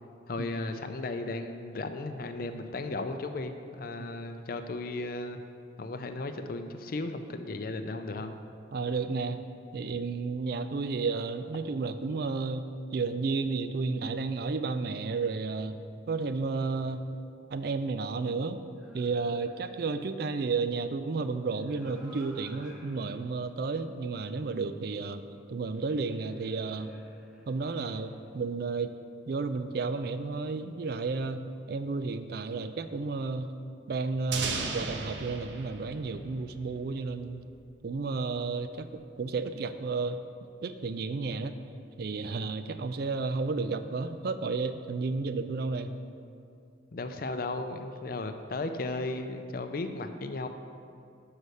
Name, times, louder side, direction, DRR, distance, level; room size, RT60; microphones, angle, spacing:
voice 1, 0.3-5.4 5.8-8.4 46.9-50.5, left 2 dB, 50° left, 8 dB, 0.5 m, -35 dB
voice 2, 8.7-9.4 9.7-15.8 16.1-17.1 17.5-18.6 18.9-25.2 25.5-26.9 27.5-28.9 29.3-33.5 33.9-37.5 37.8-40.2 40.6-41.6 42.0-45.9, right 4 dB, 55° right, 10 dB, 0.4 m, -32 dB
sound 1, 18.7-19.9 21.3-23.1 23.6-23.7 25.6-28.2, left 1 dB, 5° right, 0.8 m, -53 dB
sound 2, 34.3-37.1, right 4 dB, 70° right, 0.7 m, -36 dB
6.5 x 5.5 x 6.4 m, 2.4 s
head